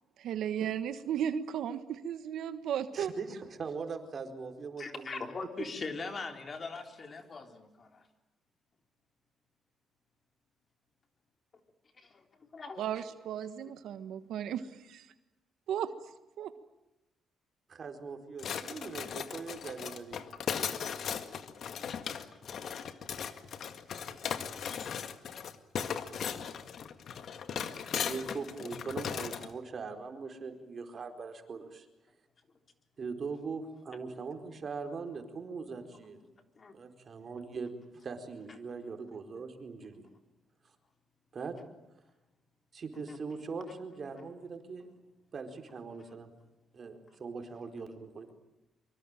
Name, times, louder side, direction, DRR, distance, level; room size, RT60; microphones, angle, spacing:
voice 1, 0.2-3.1 12.8-15.1 15.7-15.9 16.4-16.5, right 9 dB, 75° right, 11 dB, 1.5 m, -35 dB
voice 2, 2.9-5.2 17.7-20.2 27.9-31.9 33.0-36.2 36.7-40.1 41.3-41.6 42.7-44.9 45.3-46.3 46.7-48.3, right 4 dB, 45° right, 6 dB, 4.5 m, -41 dB
voice 3, 4.8-8.1 12.0-12.8 26.2-26.3 36.6-36.7 43.1-43.2 43.7-43.8 45.9-46.1, left 4 dB, 40° left, 6 dB, 3.7 m, -42 dB
sound 1, 18.4-29.5, left 7 dB, 60° left, 1.9 m, -37 dB
25.0 x 24.0 x 9.1 m, 0.94 s
cardioid pair, 90°, 0 cm